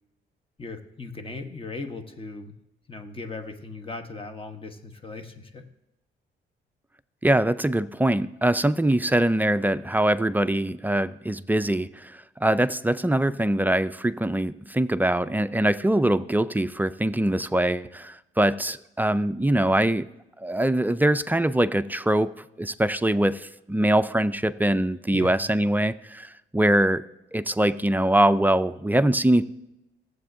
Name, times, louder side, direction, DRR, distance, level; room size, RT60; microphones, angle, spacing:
voice 1, 0.6-2.5 2.9-5.7 25.1-25.4, left 3 dB, 25° left, 6 dB, 1.0 m, -38 dB
voice 2, 7.2-20.1 20.4-22.3 22.6-27.0 27.3-29.4, right 1 dB, 10° right, 12 dB, 0.3 m, -23 dB
17.5 x 7.7 x 2.6 m, 0.91 s
cardioid pair, 90°, 20 cm